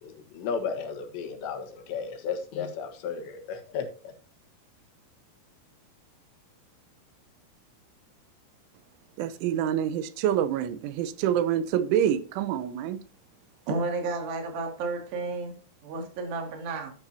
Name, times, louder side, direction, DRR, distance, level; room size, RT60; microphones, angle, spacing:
voice 1, 0.0-4.1, left 6 dB, 75° left, 3.6 m, -34 dB
voice 2, 9.2-13.0, right 10 dB, 85° right, 3.3 m, -26 dB
voice 3, 13.7-15.5 15.8-16.9, right 3 dB, 65° right, 4.5 m, -32 dB
12.5 x 11.5 x 2.8 m
omnidirectional pair, 5.3 m